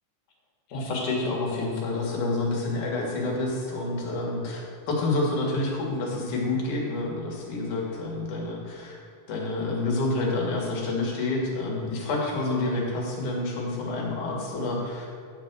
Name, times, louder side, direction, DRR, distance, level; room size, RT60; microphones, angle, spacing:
voice 1, 0.7-9.0 9.3-15.1, left 2 dB, 75° left, -2 dB, 3.0 m, -28 dB
10.5 x 4.5 x 6.7 m, 2.2 s
omnidirectional pair, 3.5 m